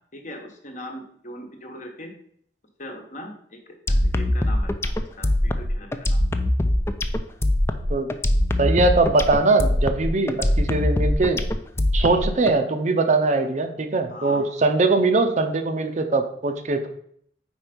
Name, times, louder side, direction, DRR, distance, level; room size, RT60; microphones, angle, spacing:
voice 1, 0.1-2.1 2.8-3.6 3.9-6.2 14.1-14.5, left 1 dB, 45° left, 3 dB, 1.1 m, -40 dB
sound 1, 3.9-12.5, left 1 dB, 15° left, 0.3 m, -22 dB
voice 2, 8.6-11.4 11.9-16.9, right 3 dB, 45° right, 7 dB, 0.6 m, -21 dB
4.5 x 4.4 x 5.1 m, 0.65 s
head